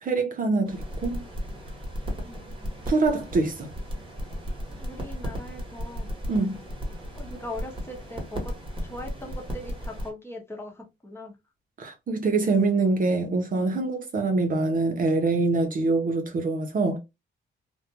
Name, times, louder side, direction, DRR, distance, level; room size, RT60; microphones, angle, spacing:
voice 1, 0.0-1.2 2.9-3.7 6.3-6.6 11.8-17.0, right 3 dB, 45° right, 0.6 m, -24 dB
sound 1, 0.6-10.1, equal, 25° right, 1.1 m, -35 dB
voice 2, 2.2-2.9 4.8-6.1 7.1-8.5 8.8-11.4, left 1 dB, 10° left, 0.9 m, -40 dB
2.5 x 2.1 x 2.7 m
cardioid pair, 90°, 20 cm